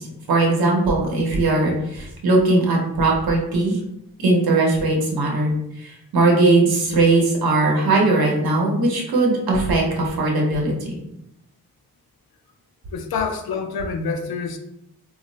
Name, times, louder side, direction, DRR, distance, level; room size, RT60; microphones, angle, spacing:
voice 1, 0.0-3.8 4.2-11.0, right 2 dB, 85° right, -1 dB, 0.8 m, -19 dB
voice 2, 12.9-14.6, left 5 dB, 85° left, 5 dB, 0.5 m, -27 dB
2.4 x 2.0 x 3.7 m, 0.82 s
wide cardioid pair, 130°, 36 cm